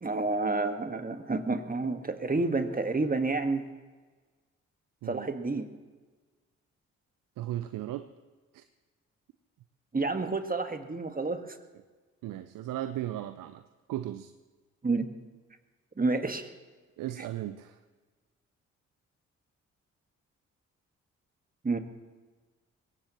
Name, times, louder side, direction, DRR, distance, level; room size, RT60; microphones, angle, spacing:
voice 1, 0.0-3.6 5.1-5.7 9.9-11.5 14.8-15.1 16.0-16.5 21.6-21.8, right 3 dB, 25° right, 7 dB, 1.6 m, -29 dB
voice 2, 7.4-8.1 8.5-8.6 12.2-13.6 13.9-14.3 17.0-17.8, right 13 dB, 65° right, 12 dB, 0.7 m, -36 dB
22.0 x 17.5 x 3.1 m, 1.4 s
hypercardioid pair, 40°, 35 cm